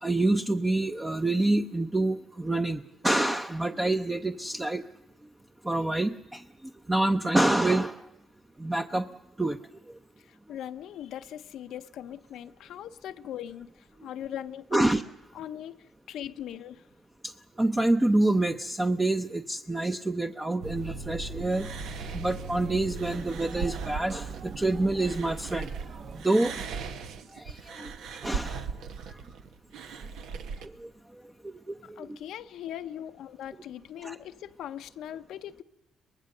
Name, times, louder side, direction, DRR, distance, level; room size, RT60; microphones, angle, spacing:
voice 1, 0.0-4.8 5.6-6.4 6.9-8.0 8.6-9.1 9.4-9.6 14.7-15.0 17.2-17.3 17.6-21.7 22.1-25.7 26.2-26.5 27.3-27.9 28.2-28.6 30.6-30.9 31.4-32.0 34.0-34.1, right 2 dB, 15° right, 0.7 m, -27 dB
voice 2, 10.2-15.0 15.3-16.9 31.8-35.6, left 10 dB, 80° left, 0.7 m, -40 dB
sound 1, 20.6-26.2, right 3 dB, 55° right, 1.1 m, -40 dB
sound 2, 21.5-25.9 26.2-30.7, right 5 dB, 85° right, 1.2 m, -39 dB
23.5 x 20.0 x 6.6 m
cardioid pair, 90°, 0 cm